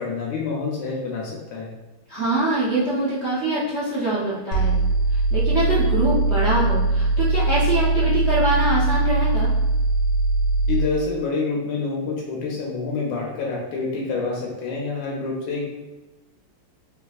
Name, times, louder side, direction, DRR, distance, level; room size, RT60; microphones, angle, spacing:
voice 1, 0.0-1.7 10.7-15.7, left 4 dB, 90° left, -3 dB, 1.5 m, -27 dB
voice 2, 2.1-4.8 5.1-9.5, right 2 dB, 70° right, -11 dB, 0.6 m, -24 dB
sound 1, 4.5-10.9, right 2 dB, 60° left, 1.4 m, -21 dB
3.4 x 3.3 x 2.3 m, 1.1 s
omnidirectional pair, 2.4 m